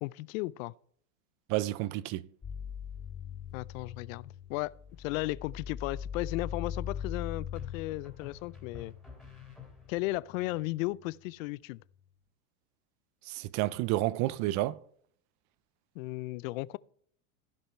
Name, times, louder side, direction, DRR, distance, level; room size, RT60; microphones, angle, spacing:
voice 1, 0.0-0.7 3.5-8.9 9.9-11.8 16.0-16.8, left 20 dB, 65° left, 0.5 m, -35 dB
voice 2, 1.5-2.2 13.3-14.8, right 17 dB, 45° right, 0.5 m, -30 dB
sound 1, 2.4-9.9 10.3-11.2, left 8 dB, 20° left, 2.9 m, -41 dB
sound 2, 4.9-5.5 7.5-10.2, left 6 dB, ahead, 3.3 m, -50 dB
15.0 x 5.6 x 4.4 m
supercardioid pair, 130°, 43 cm